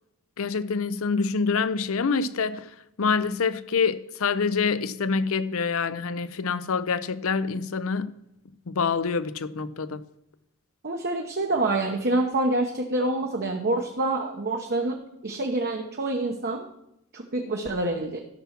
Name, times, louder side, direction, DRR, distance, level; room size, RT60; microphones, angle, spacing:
voice 1, 0.4-2.7 3.0-8.1 8.7-10.0, left 5 dB, 65° left, 0.6 m, -26 dB
voice 2, 10.8-15.0 15.2-16.7 17.1-18.2, right 2 dB, 45° right, 0.9 m, -26 dB
13.0 x 6.0 x 5.9 m
head